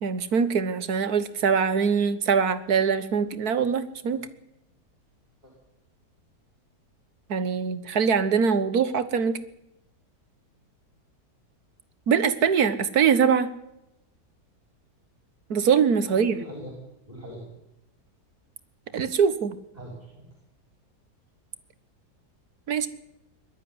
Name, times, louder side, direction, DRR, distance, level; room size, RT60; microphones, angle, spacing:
voice 1, 0.0-4.2 7.3-9.4 12.1-13.5 15.5-16.4 18.9-19.6 22.7-22.9, right 6 dB, 65° right, 13 dB, 1.8 m, -23 dB
voice 2, 16.1-16.7 17.1-17.4 19.8-20.2, equal, 25° right, -1 dB, 6.2 m, -41 dB
21.0 x 12.5 x 9.7 m, 0.88 s
omnidirectional pair, 1.8 m